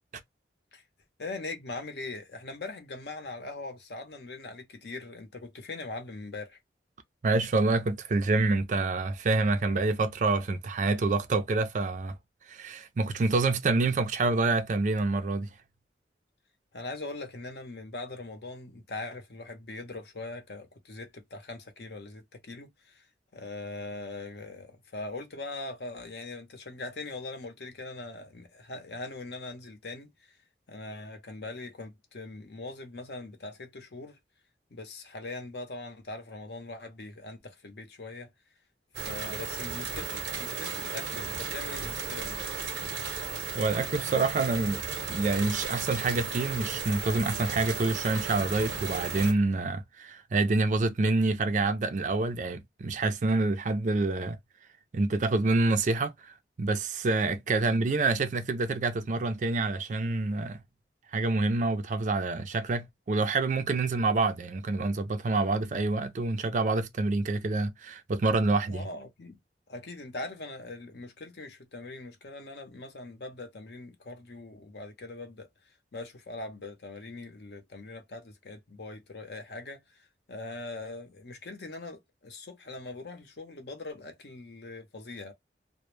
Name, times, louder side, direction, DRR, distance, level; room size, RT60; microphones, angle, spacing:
voice 1, 1.2-6.6 16.7-23.1 23.3-30.4 30.7-34.2 34.7-38.3 39.0-42.4 68.7-69.4 69.7-85.3, left 2 dB, 65° left, 0.7 m, -41 dB
voice 2, 7.2-12.2 12.5-15.5 43.6-44.8 45.1-54.4 54.9-60.6 61.1-68.8, right 3 dB, 45° right, 0.4 m, -27 dB
sound 1, 38.9-49.3, right 5 dB, 90° right, 0.7 m, -35 dB
2.1 x 2.0 x 3.0 m
head